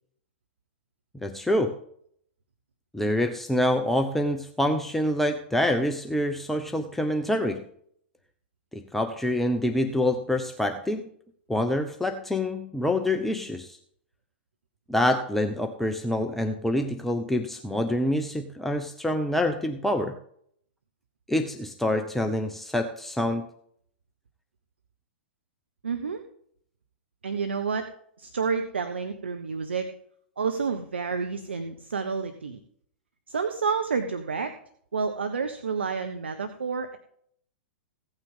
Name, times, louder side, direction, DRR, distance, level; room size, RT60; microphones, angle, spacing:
voice 1, 1.2-1.8 2.9-7.6 8.7-11.1 11.5-13.8 14.9-20.2 21.3-23.4, left 1 dB, 5° left, 6 dB, 0.8 m, -26 dB
voice 2, 25.8-26.2 27.2-27.9 28.2-29.9 30.4-32.6 33.3-34.6 34.9-37.0, right 5 dB, 75° right, 8 dB, 0.9 m, -29 dB
16.0 x 8.9 x 3.7 m, 0.65 s
figure-of-eight pair, 105°, 6 cm